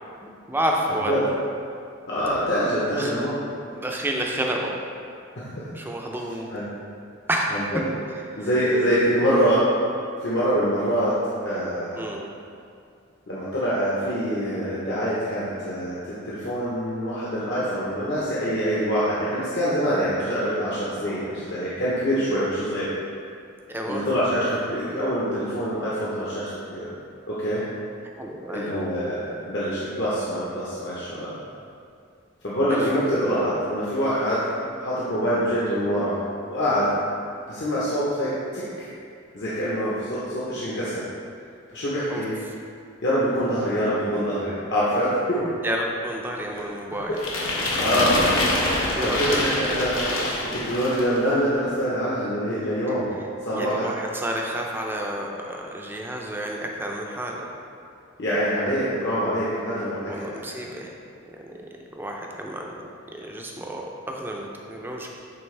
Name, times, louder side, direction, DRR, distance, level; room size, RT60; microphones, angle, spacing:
voice 1, 0.5-1.3 2.9-3.1 3.7-4.7 5.7-6.5 7.3-7.6 8.3-8.5 12.0-12.3 23.7-24.1 28.2-28.7 32.7-33.0 42.1-42.5 45.6-47.2 49.0-49.5 52.9-53.0 53.5-57.5 60.1-61.0 62.0-65.1, right 1 dB, 10° right, 0 dB, 0.5 m, -30 dB
voice 2, 2.1-3.4 5.4-5.6 6.5-6.6 7.5-7.8 8.4-9.6 10.2-11.2 11.4-12.0 13.3-22.9 23.9-26.9 27.3-27.6 28.5-31.3 32.4-34.5 34.8-36.2 36.5-36.9 37.5-38.9 39.3-41.0 41.7-42.3 43.0-45.5 46.5-46.6 47.8-48.2 48.6-50.0 50.5-53.1 53.4-53.9 58.2-60.4, equal, 60° left, -9 dB, 1.0 m, -25 dB
sound 1, 47.2-51.2, left 1 dB, 85° left, 1.2 m, -25 dB
8.7 x 3.4 x 3.3 m, 2.4 s
head